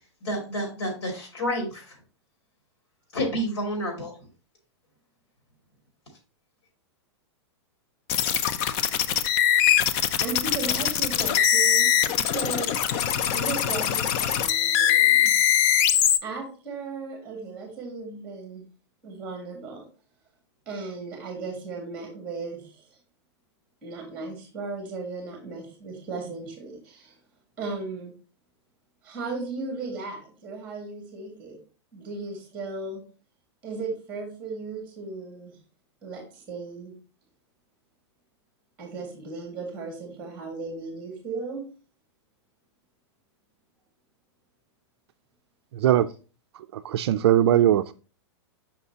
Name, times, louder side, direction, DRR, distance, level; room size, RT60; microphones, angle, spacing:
voice 1, 0.2-2.0 3.1-4.1, equal, 85° left, 2.7 m, -29 dB
sound 1, 8.1-16.2, left 9 dB, 30° left, 0.4 m, -22 dB
voice 2, 10.2-11.9 12.2-12.7 13.3-15.3 16.2-18.7 19.0-19.9 20.7-22.9 23.8-27.2 27.6-28.1 29.0-31.6 31.9-33.0 33.6-35.6 36.0-36.9 38.8-41.7, right 3 dB, 10° right, 1.9 m, -36 dB
voice 3, 45.7-46.1 46.7-47.9, right 11 dB, 65° right, 0.4 m, -20 dB
6.6 x 5.8 x 2.8 m
supercardioid pair, 160°, 15 cm